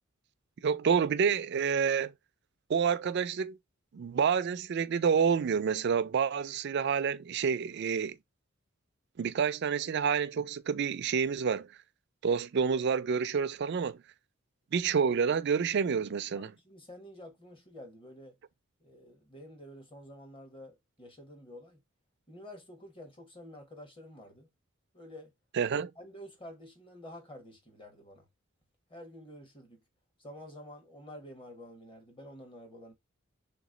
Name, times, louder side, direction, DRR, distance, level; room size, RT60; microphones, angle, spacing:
voice 1, 0.6-2.1 2.7-3.6 3.9-8.2 9.2-11.7 12.2-14.0 14.7-16.5 25.5-25.9, right 6 dB, 55° right, 0.4 m, -28 dB
voice 2, 16.3-18.4 18.8-21.8 22.3-24.5 24.9-25.3 26.0-28.3 28.9-29.8 30.2-32.9, left 1 dB, 25° left, 1.2 m, -49 dB
3.5 x 3.0 x 3.7 m
head